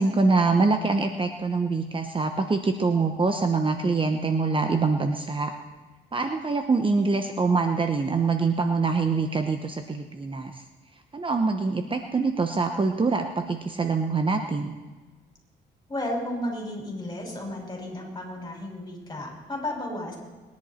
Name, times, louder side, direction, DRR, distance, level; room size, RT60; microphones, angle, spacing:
voice 1, 0.0-5.5 6.1-10.6 11.1-14.7, right 4 dB, 25° right, 6 dB, 1.0 m, -24 dB
voice 2, 15.9-20.2, left 1 dB, 20° left, 0 dB, 5.8 m, -33 dB
21.0 x 10.5 x 4.4 m, 1.3 s
cardioid pair, 90°, 20 cm